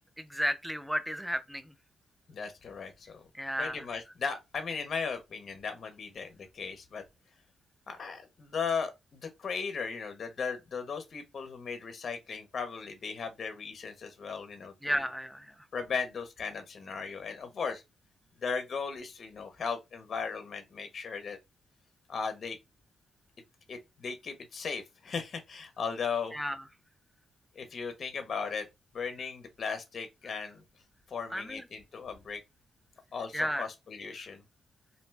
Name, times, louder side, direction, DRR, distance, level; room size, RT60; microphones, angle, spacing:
voice 1, 0.2-1.7 3.3-3.8 14.8-15.5 26.3-26.6 31.3-31.6 33.3-33.7, equal, ahead, 0.4 m, -33 dB
voice 2, 2.3-3.2 3.6-7.0 7.9-15.0 15.7-17.8 18.4-21.4 22.1-22.6 23.7-26.4 27.5-28.7 28.9-30.6 31.1-32.4 33.1-34.4, left 5 dB, 50° left, 0.6 m, -37 dB
2.4 x 2.2 x 3.2 m
cardioid pair, 110°, 0 cm